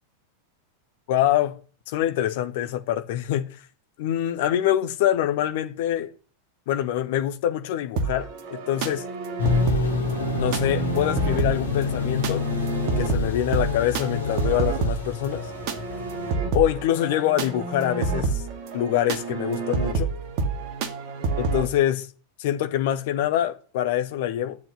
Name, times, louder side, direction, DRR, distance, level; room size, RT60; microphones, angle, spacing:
voice 1, 1.1-1.6 1.9-3.5 4.0-6.1 6.7-9.0 10.3-12.5 13.0-15.5 16.5-18.4 18.7-20.1 21.4-22.1 22.4-24.6, left 12 dB, 50° left, 1.3 m, -25 dB
sound 1, 8.0-21.7, right 4 dB, 45° right, 2.0 m, -29 dB
sound 2, 9.4-16.3, left 4 dB, 70° left, 2.8 m, -28 dB
11.0 x 7.4 x 9.6 m
figure-of-eight pair, 90°, 0 cm